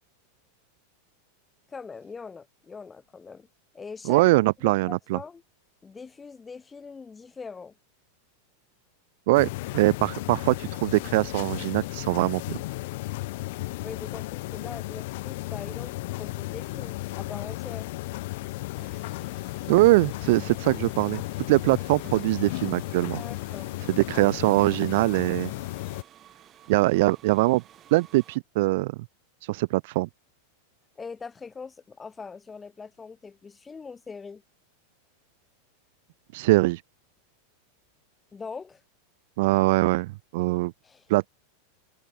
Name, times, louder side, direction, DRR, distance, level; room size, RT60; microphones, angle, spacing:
voice 1, 1.7-3.5 3.7-4.2 4.6-5.4 5.8-7.7 13.8-17.9 23.2-23.7 24.1-24.6 31.0-34.4 38.3-38.8 40.8-41.1, left 5 dB, 10° left, 2.5 m, -42 dB
voice 2, 4.1-5.2 9.3-12.6 19.7-21.2 21.5-23.2 23.9-25.5 26.7-27.6 27.9-29.0 29.5-30.1 36.3-36.8 39.4-40.7 41.1-41.3, right 21 dB, 60° right, 0.4 m, -22 dB
sound 1, 9.3-26.0, left 20 dB, 60° left, 0.5 m, -34 dB
sound 2, 18.7-28.4, right 11 dB, 25° right, 2.4 m, -54 dB
supercardioid pair, 150°, 0 cm